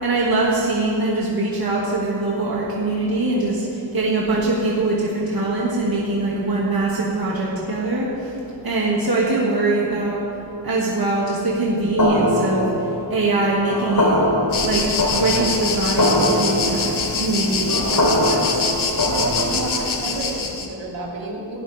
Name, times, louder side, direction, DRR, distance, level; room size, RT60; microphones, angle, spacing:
voice 1, 0.0-8.4 8.6-10.2 10.6-12.7 13.1-14.2 14.6-18.7, right 2 dB, 50° right, -5 dB, 2.7 m, -22 dB
sound 1, 12.0-19.8, left 1 dB, 45° left, 4.0 m, -22 dB
sound 2, 14.5-20.7, left 4 dB, 80° left, 1.7 m, -25 dB
voice 2, 18.9-21.6, right 2 dB, 70° right, -3 dB, 3.6 m, -30 dB
20.5 x 17.0 x 3.7 m, 2.9 s
wide cardioid pair, 100°, 46 cm